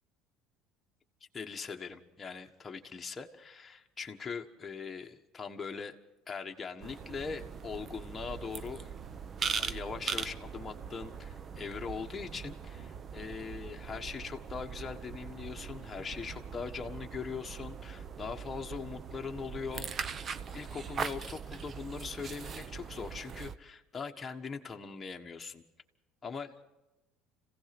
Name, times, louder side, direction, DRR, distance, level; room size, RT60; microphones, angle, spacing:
voice 1, 1.3-6.0 6.3-8.9 9.6-20.1 20.5-25.6 26.2-26.6, left 5 dB, 25° left, 2 dB, 1.4 m, -41 dB
sound 1, 6.8-23.6, right 6 dB, 40° right, 0.8 m, -41 dB
26.5 x 16.5 x 6.1 m, 1.0 s
supercardioid pair, 95°, 0 cm